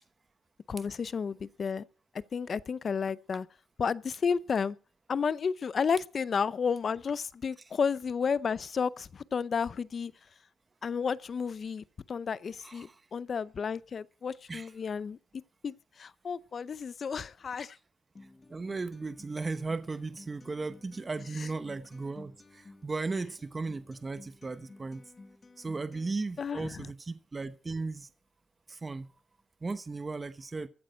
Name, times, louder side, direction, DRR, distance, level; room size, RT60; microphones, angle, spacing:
voice 1, 0.7-1.8 2.3-3.5 3.8-4.8 5.1-10.1 10.8-15.2 15.6-17.8 21.4-21.5 26.4-26.9, left 6 dB, 50° left, 0.6 m, -32 dB
voice 2, 12.6-12.9 14.5-14.7 18.5-25.0 25.6-28.1 28.7-29.1 29.6-30.7, right 3 dB, 30° right, 0.9 m, -36 dB
Acoustic guitar, 18.1-26.1, left 3 dB, 30° left, 1.6 m, -54 dB
15.0 x 8.7 x 6.3 m
cardioid pair, 95°, 0 cm